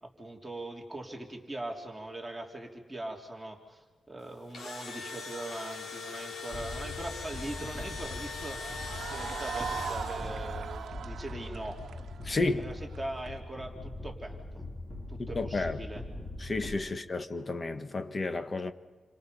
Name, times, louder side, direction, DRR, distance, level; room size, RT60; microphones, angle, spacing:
voice 1, 0.0-8.6 9.1-11.8 12.4-14.7 15.1-16.0 16.9-17.0, right 1 dB, 5° right, 3.5 m, -41 dB
Engine / Drill, 4.3-10.5, left 4 dB, 75° left, 5.6 m, -41 dB
sound 1, 6.5-16.8, left 2 dB, 10° left, 2.8 m, -42 dB
sound 2, 8.6-13.3, right 7 dB, 80° right, 1.0 m, -39 dB
voice 2, 12.2-12.6 15.2-15.8 16.4-18.7, left 3 dB, 30° left, 1.5 m, -32 dB
29.5 x 26.0 x 5.4 m
wide cardioid pair, 115°, 0 cm